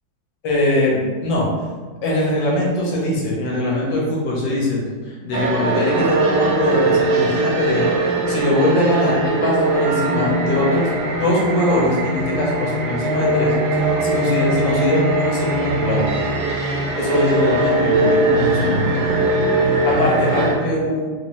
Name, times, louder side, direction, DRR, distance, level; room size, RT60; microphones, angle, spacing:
voice 1, 0.4-1.5 2.0-4.8 5.1-7.9 8.3-16.1 16.9-19.2 19.8-21.1, left 1 dB, 75° left, -4 dB, 1.7 m, -21 dB
sound 1, 5.3-20.5, right 2 dB, 90° right, 1.4 m, -20 dB
3.7 x 2.6 x 3.1 m, 1.5 s
omnidirectional pair, 2.1 m